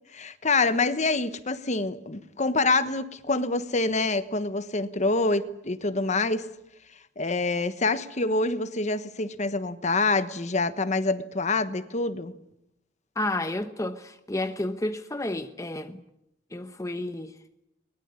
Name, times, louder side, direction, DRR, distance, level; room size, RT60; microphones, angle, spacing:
voice 1, 0.1-6.5 7.2-12.3, left 3 dB, 40° left, 1.3 m, -26 dB
voice 2, 13.2-16.0 16.5-17.4, left 1 dB, 15° left, 1.0 m, -31 dB
22.5 x 21.0 x 9.9 m
head